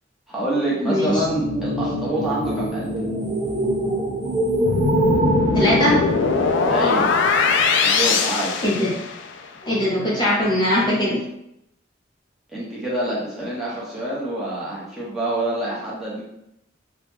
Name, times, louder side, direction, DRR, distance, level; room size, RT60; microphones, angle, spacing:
voice 1, 0.3-2.9 6.7-7.1 7.8-8.6 12.5-16.2, right 1 dB, ahead, -8 dB, 0.9 m, -26 dB
voice 2, 0.8-1.2 5.2-5.3 5.5-6.0 8.6-8.9 9.7-11.2, left 1 dB, 25° left, -7 dB, 0.8 m, -20 dB
sound 1, 1.1-7.0, right 1 dB, 25° right, 0.5 m, -24 dB
sound 2, 4.7-9.4, left 5 dB, 65° left, 0.3 m, -21 dB
3.0 x 2.3 x 3.5 m, 0.81 s
head